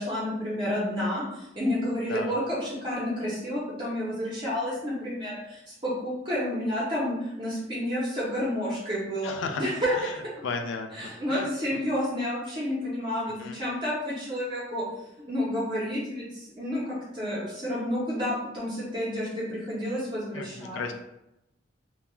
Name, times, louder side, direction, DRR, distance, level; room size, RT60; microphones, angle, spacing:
voice 1, 0.0-10.4 10.9-14.8 15.3-20.8, equal, 25° right, -8 dB, 0.7 m, -30 dB
voice 2, 9.2-9.6 10.4-11.5 11.7-11.8 13.4-13.6 20.3-20.9, left 4 dB, 90° left, 5 dB, 0.3 m, -34 dB
2.3 x 2.2 x 2.9 m, 0.87 s
head